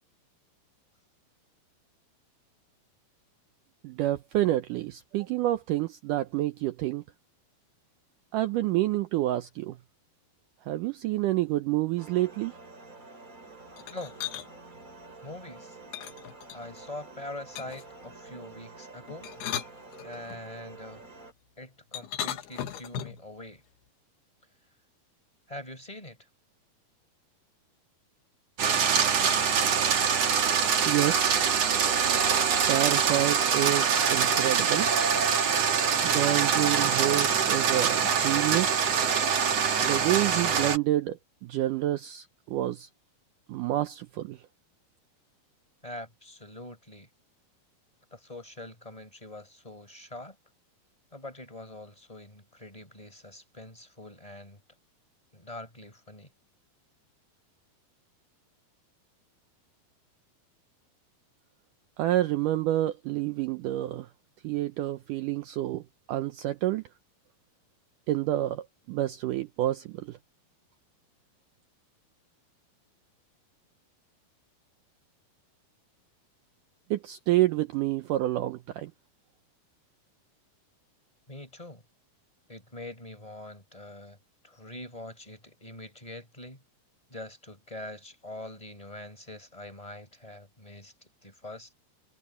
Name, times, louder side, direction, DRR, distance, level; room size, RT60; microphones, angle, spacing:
voice 1, 3.8-7.0 8.3-9.8 10.7-12.5 30.9-31.5 32.7-34.9 36.0-38.9 39.8-42.9 43.5-44.4 62.0-64.1 64.4-65.8 66.1-66.8 68.1-70.2 76.9-78.9, right 14 dB, 80° right, 1.9 m, -28 dB
sound 1, 12.0-21.3, right 3 dB, 20° right, 4.4 m, -48 dB
sound 2, 13.8-14.5 15.9-16.9 17.6-18.0 19.1-20.4 21.9-23.3, left 10 dB, 85° left, 3.6 m, -37 dB
voice 2, 15.2-15.8 16.5-19.3 20.0-21.0 21.6-23.6 25.5-26.3 45.8-47.1 48.1-50.4 51.1-54.6 55.3-56.3 81.3-81.8 82.5-84.2 84.4-86.6 87.1-91.7, left 1 dB, 10° left, 4.4 m, -44 dB
sound 3, 28.6-40.8, right 7 dB, 50° right, 2.6 m, -24 dB
omnidirectional pair, 4.5 m